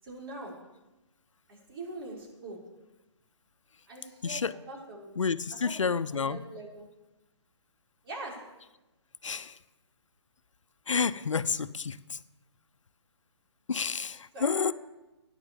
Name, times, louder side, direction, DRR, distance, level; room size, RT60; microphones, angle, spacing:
voice 1, 0.0-0.5 1.5-2.6 3.9-5.1 5.6-6.9 8.0-8.4 14.3-14.7, right 2 dB, 50° right, -3 dB, 5.7 m, -43 dB
voice 2, 4.2-4.6 5.2-6.4 9.2-9.6 10.9-12.2 13.7-14.7, left 5 dB, 90° left, 14 dB, 0.7 m, -30 dB
14.0 x 10.0 x 7.2 m, 1.0 s
hypercardioid pair, 155°, 16 cm